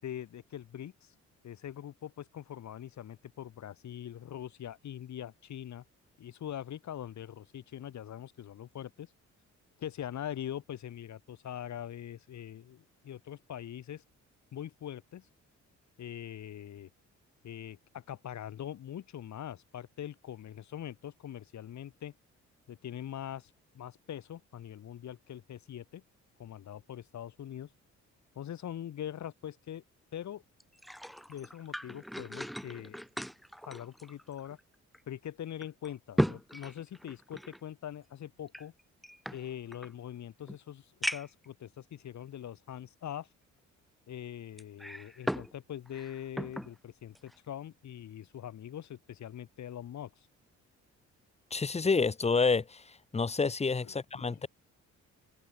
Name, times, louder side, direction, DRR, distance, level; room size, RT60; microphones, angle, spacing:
voice 1, 0.0-1.1 1.4-5.8 6.2-9.1 9.8-14.0 14.5-15.3 16.0-16.9 17.4-22.1 22.7-26.0 26.4-27.7 28.3-29.8 30.1-30.4 31.3-33.0 33.6-34.6 35.1-38.7 39.3-43.3 44.1-50.3 53.8-54.4, left 10 dB, 65° left, 5.5 m, -43 dB
sound 1, 30.6-34.6 34.9-35.0 35.6-37.6 38.5-39.9 40.5-40.6 41.0-41.5 42.2-42.3 44.6-45.5 45.9-46.7 47.2-47.4, equal, ahead, 1.5 m, -37 dB
voice 2, 51.5-54.5, left 4 dB, 20° left, 1.1 m, -29 dB
open air
cardioid pair, 90°, 30 cm